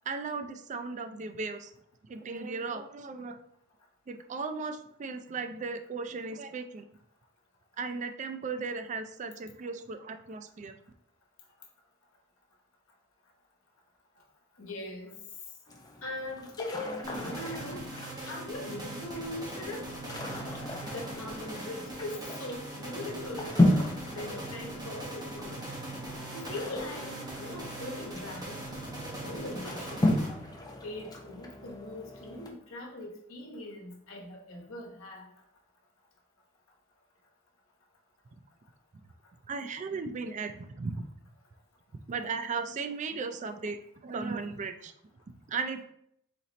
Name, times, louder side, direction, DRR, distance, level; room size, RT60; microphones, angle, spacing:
voice 1, 0.1-1.7 2.0-3.4 4.1-6.9 7.8-10.7 39.5-41.1 42.1-44.9 45.5-45.8, right 4 dB, 35° right, 8 dB, 0.3 m, -36 dB
voice 2, 14.6-15.2 16.0-17.9 18.3-19.9 20.9-23.6 24.1-25.6 26.3-27.1 27.4-28.6 29.2-30.1 30.8-35.3, left 1 dB, 75° left, -1 dB, 1.1 m, -40 dB
sound 1, 15.7-32.5, left 1 dB, 20° left, 0.6 m, -34 dB
sound 2, 17.0-30.7, right 1 dB, 20° right, 1.3 m, -41 dB
4.2 x 3.9 x 3.1 m, 0.72 s
head